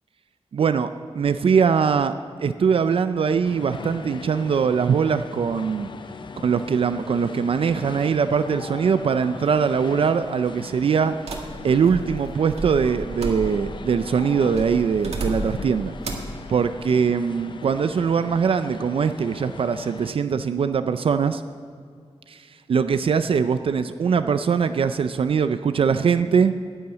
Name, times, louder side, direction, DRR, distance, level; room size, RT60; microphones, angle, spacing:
voice 1, 0.5-2.1 2.4-5.9 6.4-11.2 11.6-15.9 16.5-21.4 22.3-22.4 22.7-26.5, right 6 dB, 60° right, 10 dB, 0.4 m, -22 dB
sound 1, 3.4-20.1, left 5 dB, 50° left, 0.5 m, -40 dB
sound 2, 11.3-13.8 14.5-15.7 16.0-16.4, right 2 dB, 80° right, 1.7 m, -32 dB
10.5 x 9.9 x 7.9 m, 2.2 s
wide cardioid pair, 160°, 11 cm